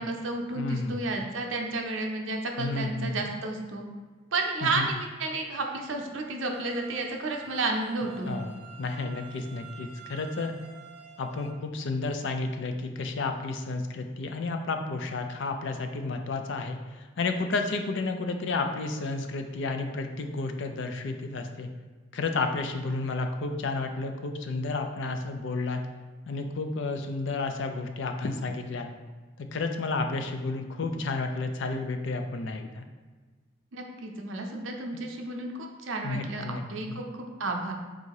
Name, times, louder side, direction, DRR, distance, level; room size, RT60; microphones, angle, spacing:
voice 1, 0.0-3.8 4.3-8.3 33.7-37.7, right 2 dB, 70° right, 2 dB, 0.6 m, -32 dB
voice 2, 0.5-1.0 2.6-3.1 4.6-4.9 8.3-10.5 11.2-16.8 17.2-21.7 22.1-25.8 26.3-28.9 29.4-32.8 36.0-37.0, left 3 dB, 65° left, 6 dB, 0.4 m, -31 dB
sound 1, 6.5-11.5, right 7 dB, 30° right, 0.5 m, -48 dB
3.7 x 2.7 x 4.6 m, 1.4 s
head